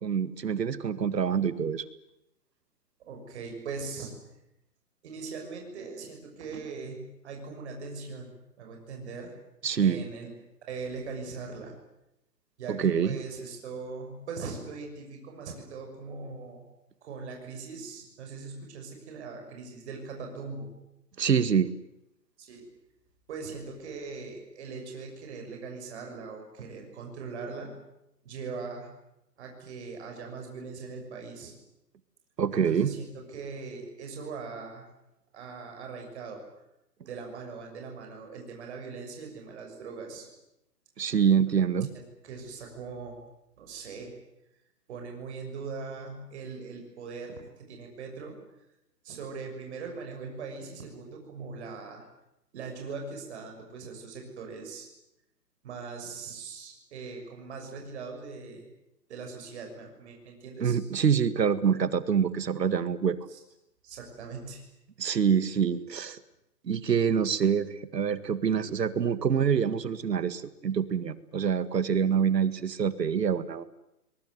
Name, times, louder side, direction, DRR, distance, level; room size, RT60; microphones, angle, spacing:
voice 1, 0.0-1.9 9.6-10.0 12.7-13.2 21.2-21.7 32.4-32.9 41.0-41.9 60.6-63.2 65.0-66.2 66.6-73.6, right 7 dB, 85° right, 14 dB, 2.0 m, -26 dB
voice 2, 3.1-4.1 5.0-8.3 8.6-9.3 9.8-10.3 10.7-11.7 12.6-16.6 17.0-20.7 22.4-22.6 23.3-27.7 28.2-28.9 29.4-31.5 32.5-34.9 35.3-36.4 37.0-40.3 41.9-43.2 43.6-44.1 44.9-48.4 49.0-52.1 52.5-54.9 55.6-58.7 59.1-60.8 63.3-63.4 63.8-64.6 72.0-72.2, right 4 dB, 45° right, 2 dB, 6.4 m, -40 dB
22.5 x 21.5 x 9.5 m, 0.85 s
hypercardioid pair, 160°, 48 cm